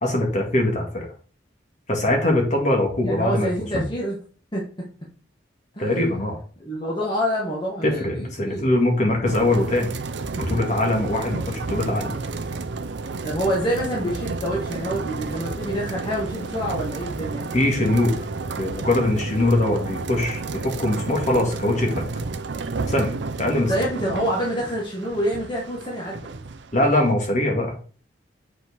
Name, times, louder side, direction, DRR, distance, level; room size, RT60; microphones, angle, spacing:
voice 1, 0.0-1.1 1.9-3.8 5.8-6.4 7.8-9.9 10.4-12.2 17.5-18.1 18.5-22.0 22.9-23.7 26.7-27.7, left 1 dB, 40° left, 0 dB, 1.9 m, -22 dB
voice 2, 3.0-4.2 4.5-4.6 5.7-6.0 6.6-8.7 11.0-11.1 13.2-17.5 23.5-26.3, equal, 25° left, -4 dB, 1.5 m, -27 dB
sound 1, 9.2-27.1, right 3 dB, 70° right, 0.6 m, -31 dB
7.6 x 4.6 x 3.6 m, 0.41 s
head